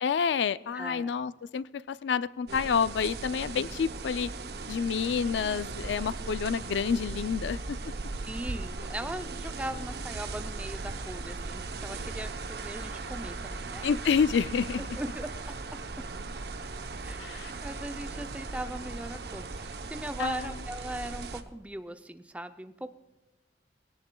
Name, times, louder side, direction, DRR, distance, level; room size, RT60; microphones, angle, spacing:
voice 1, 0.0-4.3 4.7-7.6 13.8-14.8 17.2-17.5 20.2-20.4, left 6 dB, 90° left, 16 dB, 0.4 m, -28 dB
voice 2, 0.7-1.1 8.2-14.2 14.7-15.6 17.0-22.9, right 1 dB, 10° right, 9 dB, 0.4 m, -39 dB
sound 1, 2.5-21.4, right 3 dB, 65° right, 0.7 m, -38 dB
20.5 x 17.0 x 2.2 m, 1.1 s
head